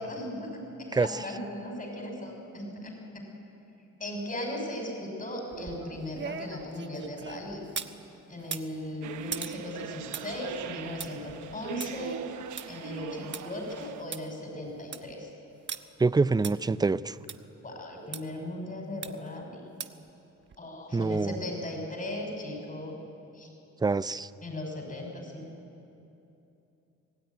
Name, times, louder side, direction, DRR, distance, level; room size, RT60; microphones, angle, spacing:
voice 1, 0.0-3.2 4.0-7.6 8.3-12.2 12.7-15.3 17.6-19.6 20.6-23.0 23.3-23.5 24.4-25.5, left 1 dB, 25° left, 2 dB, 6.0 m, -37 dB
sound 1, 5.5-8.0 8.4-13.4 13.8-13.9 14.1-14.2 14.7-15.1 15.7-15.8 16.4-16.5 17.3-17.4 18.1-18.2 19.0-19.3 19.8-20.1 20.5-20.6, right 6 dB, 40° right, 1.1 m, -40 dB
sound 2, 9.0-14.0, right 9 dB, 75° right, 1.1 m, -41 dB
voice 2, 16.0-17.2 20.9-21.3 23.8-24.3, right 4 dB, 15° right, 16 dB, 0.5 m, -25 dB
25.5 x 16.5 x 9.5 m, 2.9 s
cardioid pair, 90°, 30 cm